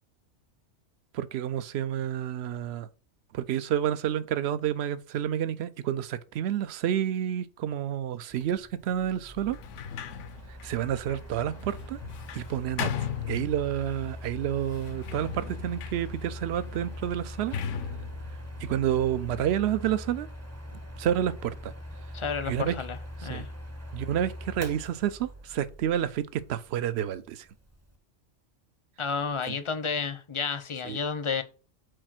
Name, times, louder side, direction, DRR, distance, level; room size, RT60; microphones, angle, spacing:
voice 1, 1.1-2.9 3.3-9.6 10.5-12.0 12.3-12.9 13.3-17.6 18.6-20.3 21.0-21.7 22.4-22.7 23.2-23.4 23.9-27.5 29.4-29.6 30.8-31.0, right 10 dB, 65° right, 0.8 m, -29 dB
Mechanical fan, 8.3-28.0, equal, 15° right, 0.6 m, -42 dB
Sliding door, 9.5-14.0 14.6-19.5, left 8 dB, 90° left, 1.0 m, -38 dB
voice 2, 22.1-23.5 29.0-31.4, left 5 dB, 35° left, 0.5 m, -31 dB
4.9 x 4.3 x 5.9 m
omnidirectional pair, 1.2 m